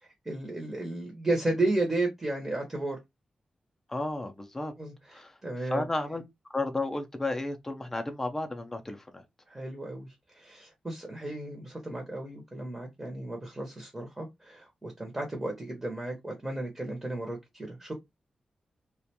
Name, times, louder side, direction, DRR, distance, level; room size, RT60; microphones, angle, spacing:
voice 1, 0.0-3.0 4.8-5.9 9.5-17.9, right 2 dB, 15° right, 0.7 m, -33 dB
voice 2, 3.9-4.7 5.1-5.3 5.7-6.2 6.5-9.2, left 2 dB, 15° left, 0.4 m, -33 dB
2.4 x 2.2 x 2.7 m
wide cardioid pair, 130°, 2 cm